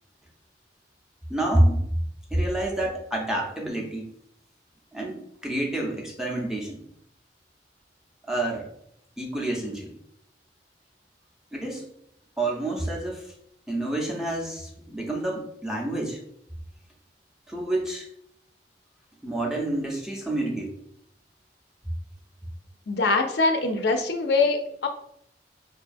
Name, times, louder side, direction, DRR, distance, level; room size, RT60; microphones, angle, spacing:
voice 1, 1.3-1.8 2.3-4.0 4.9-6.8 8.3-8.6 9.2-9.9 11.5-11.8 12.4-13.3 13.7-16.2 17.5-18.1 19.2-20.7, right 1 dB, 5° right, -1 dB, 0.5 m, -28 dB
voice 2, 22.9-24.9, left 3 dB, 65° left, 5 dB, 0.4 m, -23 dB
4.6 x 2.3 x 2.5 m, 0.73 s
head